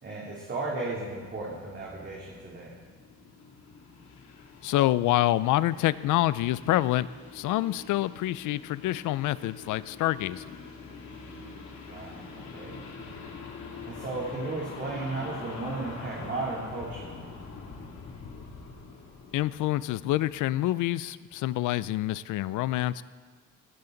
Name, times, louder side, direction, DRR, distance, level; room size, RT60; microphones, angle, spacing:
voice 1, 0.0-2.7 11.9-12.8 13.9-17.1, right 2 dB, 35° right, -5 dB, 3.0 m, -35 dB
sound 1, 1.1-20.6, left 4 dB, 65° left, 2.6 m, -45 dB
voice 2, 4.6-7.1 7.3-10.4 19.3-23.0, left 15 dB, 85° left, 17 dB, 0.5 m, -27 dB
18.0 x 13.5 x 3.9 m, 1.5 s
cardioid pair, 90°, 30 cm